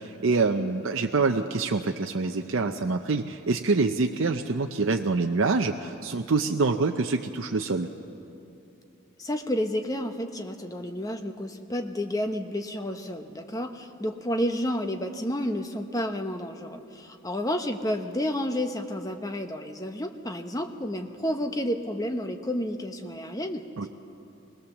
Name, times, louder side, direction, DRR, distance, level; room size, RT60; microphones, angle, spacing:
voice 1, 0.0-7.9 23.8-23.9, right 3 dB, 65° right, 4 dB, 0.6 m, -26 dB
voice 2, 9.2-23.6, equal, 15° left, 6 dB, 0.9 m, -30 dB
21.0 x 18.5 x 7.2 m, 2.6 s
head